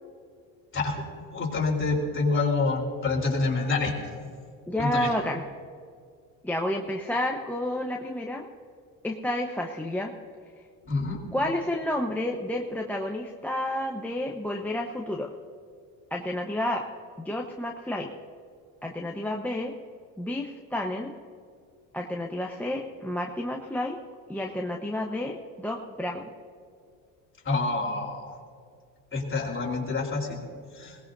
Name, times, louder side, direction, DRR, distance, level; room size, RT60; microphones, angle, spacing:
voice 1, 1.3-3.9 4.8-5.1 10.9-11.2 27.5-28.3 29.1-30.4 30.7-31.0, left 3 dB, 30° left, -2 dB, 3.8 m, -27 dB
voice 2, 4.7-5.4 6.4-8.5 9.0-10.1 11.3-15.3 16.1-16.9 17.2-18.1 18.8-19.7 20.2-21.1 21.9-24.0 24.3-26.3, left 1 dB, 5° left, 0 dB, 1.0 m, -30 dB
21.0 x 18.5 x 2.7 m, 2.2 s
supercardioid pair, 85°, 41 cm